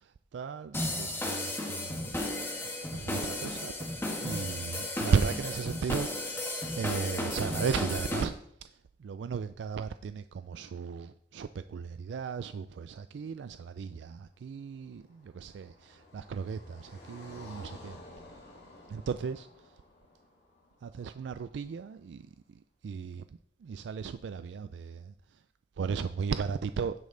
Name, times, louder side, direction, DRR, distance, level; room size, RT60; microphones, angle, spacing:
voice 1, 0.3-2.2 2.9-6.5 6.8-8.3 8.6-18.0 18.9-19.5 20.8-23.2 23.6-25.4 25.8-26.9, right 6 dB, 75° right, 11 dB, 0.3 m, -35 dB
sound 1, 0.7-8.2, left 1 dB, 15° left, 1.3 m, -34 dB
Car passing by, 14.3-21.5, left 1 dB, 65° left, 2.1 m, -52 dB
15.5 x 5.3 x 3.8 m, 0.72 s
head